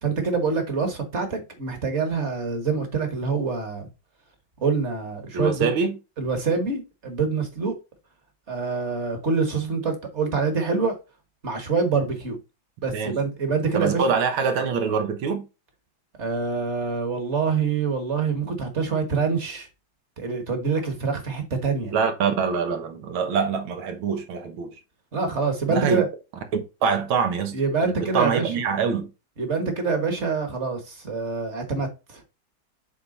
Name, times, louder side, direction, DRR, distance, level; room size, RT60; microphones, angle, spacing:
voice 1, 0.0-3.9 4.6-5.7 6.2-7.8 8.5-10.9 11.4-12.4 12.8-14.0 16.2-19.7 20.2-21.9 25.1-26.1 27.5-28.5 29.4-32.2, right 5 dB, 40° right, 1.4 m, -25 dB
voice 2, 5.3-5.9 12.9-13.2 13.7-15.4 21.9-24.7 25.7-26.0 26.8-27.6 27.8-29.1, right 5 dB, 90° right, 2.0 m, -24 dB
7.6 x 3.4 x 4.1 m
omnidirectional pair, 2.2 m